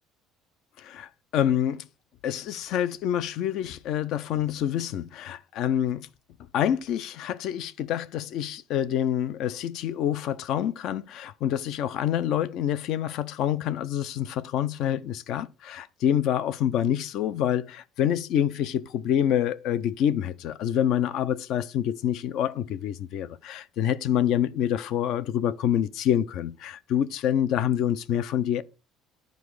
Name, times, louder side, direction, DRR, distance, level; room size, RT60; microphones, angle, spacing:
voice 1, 0.8-1.8 2.2-6.1 6.5-28.6, left 10 dB, 50° left, 0.5 m, -27 dB
10.5 x 5.1 x 4.7 m
cardioid pair, 180°, 0 cm